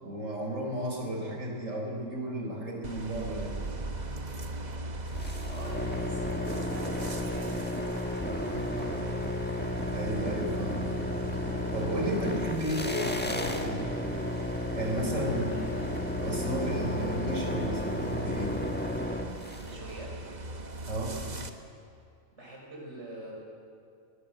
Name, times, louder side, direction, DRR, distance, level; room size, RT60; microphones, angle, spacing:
voice 1, 0.0-3.5 9.9-10.9 11.7-13.9 14.7-15.5 16.2-18.5 20.9-21.2, right 1 dB, 75° right, 1 dB, 4.5 m, -33 dB
sound 1, 2.8-21.5, right 1 dB, 35° right, 1.2 m, -39 dB
sound 2, 5.1-19.7, left 1 dB, 10° left, 1.2 m, -33 dB
voice 2, 5.4-9.3 15.4-15.7 19.5-20.3 22.4-23.3, right 1 dB, 60° right, -2 dB, 6.3 m, -43 dB
20.5 x 18.5 x 7.8 m, 2.4 s
omnidirectional pair, 1.3 m